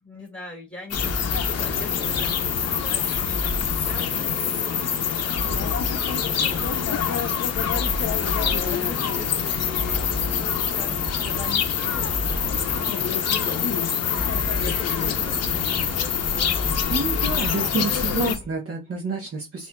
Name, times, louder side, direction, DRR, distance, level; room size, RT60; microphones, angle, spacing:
voice 1, 0.0-16.7, left 2 dB, 5° left, 1.8 m, -43 dB
sound 1, 0.9-18.4, left 7 dB, 50° left, 0.7 m, -25 dB
sound 2, 0.9-18.6, left 1 dB, 25° right, 2.5 m, -34 dB
voice 2, 16.9-19.7, right 4 dB, 45° right, 1.0 m, -28 dB
4.3 x 2.7 x 2.2 m
wide cardioid pair, 135°, 33 cm